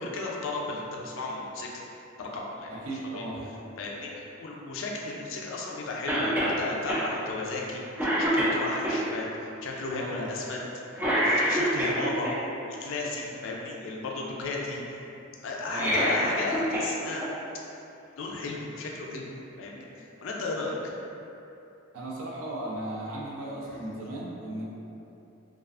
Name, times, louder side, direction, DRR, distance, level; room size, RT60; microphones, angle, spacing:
voice 1, 0.0-1.8 2.2-2.7 3.1-3.3 3.8-10.6 11.0-12.3 12.7-14.8 15.4-17.3 18.2-19.3 19.6-20.7 23.7-23.8, left 3 dB, 65° left, -2 dB, 0.4 m, -34 dB
voice 2, 2.7-3.5 10.0-10.3 15.7-16.0 21.9-24.6, right 1 dB, 90° right, -4 dB, 0.5 m, -36 dB
Cough, 6.1-6.6 6.9-7.0 7.5-7.7 8.0-9.0 10.9-12.3 15.6-16.9 17.2-17.3 18.4-18.5, equal, 10° right, 0.3 m, -26 dB
2.4 x 2.3 x 2.4 m, 2.8 s
head